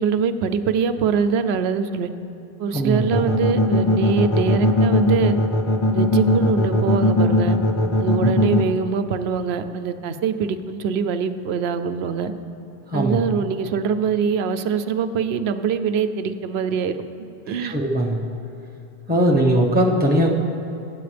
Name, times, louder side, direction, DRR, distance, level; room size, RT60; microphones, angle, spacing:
voice 1, 0.0-2.1 2.6-5.4 5.9-7.6 8.0-12.3 12.9-17.0 17.5-17.8, right 6 dB, 80° right, 10 dB, 0.9 m, -23 dB
voice 2, 2.7-3.0 12.9-13.2 17.6-18.3 19.1-20.3, right 1 dB, 10° right, -2 dB, 1.0 m, -19 dB
sound 1, 3.1-8.6, left 1 dB, 30° left, 0.7 m, -18 dB
23.5 x 8.6 x 3.4 m, 2.6 s
omnidirectional pair, 1.1 m